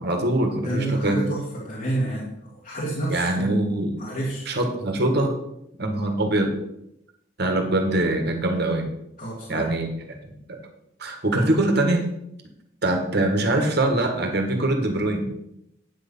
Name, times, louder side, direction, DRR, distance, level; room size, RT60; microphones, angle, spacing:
voice 1, 0.0-1.2 3.1-4.0 4.4-5.4 5.8-6.5 7.4-8.9 9.5-9.9 10.2-10.3 11.0-12.1 12.8-15.3, right 1 dB, 60° right, 4 dB, 1.7 m, -23 dB
voice 2, 0.6-2.3 2.6-3.6 4.0-4.5 9.2-9.7, right 1 dB, 45° left, -4 dB, 2.0 m, -28 dB
9.4 x 6.5 x 5.6 m, 0.81 s
head